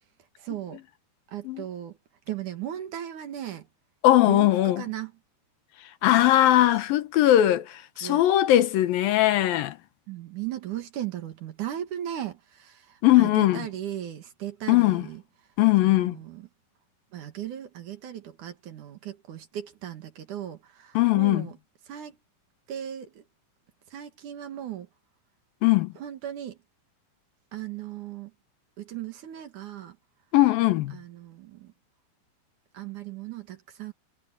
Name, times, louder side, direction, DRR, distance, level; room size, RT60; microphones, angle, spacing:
voice 1, 0.4-0.8 1.3-2.0 2.3-3.7 4.2-5.1 8.0-8.2 10.1-15.2 15.8-16.5 17.1-21.6 21.9-22.2 22.7-23.2 23.9-24.9 26.0-26.6 27.5-28.3 28.8-30.0 30.9-31.7 32.7-33.9, right 11 dB, 60° right, 2.8 m, -37 dB
voice 2, 4.0-4.8 6.0-9.8 13.0-13.6 14.7-15.1 15.6-16.2 21.0-21.5 25.6-25.9 30.3-30.9, left 14 dB, 75° left, 2.7 m, -20 dB
omnidirectional pair, 4.3 m